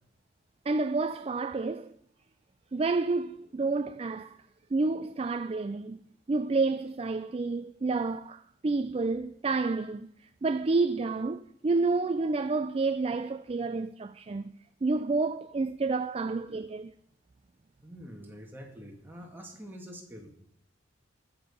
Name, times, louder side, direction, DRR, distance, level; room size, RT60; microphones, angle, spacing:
voice 1, 0.7-1.9 2.7-4.4 4.7-6.0 6.3-10.1 10.4-14.5 14.8-16.9, right 3 dB, 30° right, 0.4 m, -29 dB
voice 2, 17.8-20.4, equal, 10° right, 2.1 m, -46 dB
20.0 x 7.0 x 5.5 m
head